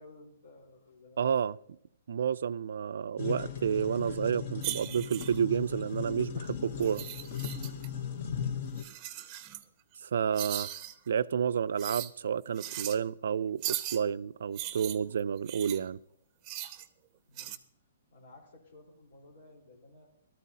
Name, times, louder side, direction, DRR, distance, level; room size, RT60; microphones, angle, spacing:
voice 1, 0.0-1.2 17.3-17.5 18.1-20.1, left 2 dB, 80° left, 4.1 m, -55 dB
voice 2, 1.2-1.6 2.1-7.1 10.0-10.7 11.1-16.0, right 7 dB, 65° right, 0.4 m, -30 dB
sound 1, 3.2-8.8, left 7 dB, 40° left, 0.9 m, -37 dB
sound 2, 4.6-5.4 6.8-7.9 8.8-9.6 10.4-10.9 11.8-12.1 12.6-13.0 13.6-14.0 14.6-15.8 16.5-16.9 17.4-17.6, right 13 dB, 20° right, 0.6 m, -38 dB
16.5 x 13.0 x 2.8 m
hypercardioid pair, 170°, 0 cm